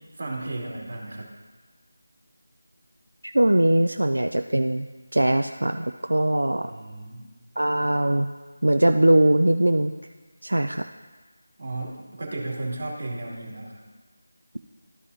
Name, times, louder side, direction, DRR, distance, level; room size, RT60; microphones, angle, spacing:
voice 1, 0.1-1.3 6.6-7.2 11.6-13.8, right 2 dB, 45° right, -2 dB, 2.4 m, -34 dB
voice 2, 3.2-4.9 5.1-6.7 7.6-8.3 8.6-9.9 10.4-10.9, right 1 dB, 80° right, 7 dB, 0.4 m, -21 dB
13.5 x 5.4 x 2.7 m, 1.3 s
figure-of-eight pair, 165°, 0 cm